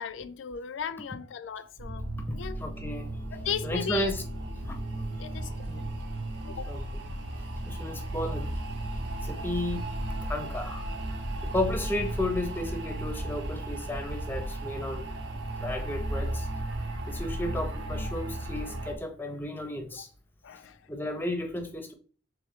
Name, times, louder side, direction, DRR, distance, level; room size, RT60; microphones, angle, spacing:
voice 1, 0.0-2.6 3.3-4.1 4.8-4.9 5.2-5.5 5.8-5.9 6.4-6.8 18.1-18.2 19.9-20.0 20.4-20.9, left 7 dB, 80° left, 0.4 m, -37 dB
sound 1, 1.8-19.0, right 1 dB, 70° right, 0.7 m, -35 dB
voice 2, 2.3-3.1 3.6-4.2 4.6-4.7 5.7-5.8 6.7-7.0 7.7-8.5 9.2-9.9 10.2-10.9 11.4-15.1 15.6-16.5 17.1-20.1 20.9-21.9, left 1 dB, 10° left, 0.5 m, -33 dB
3.7 x 3.0 x 3.5 m
head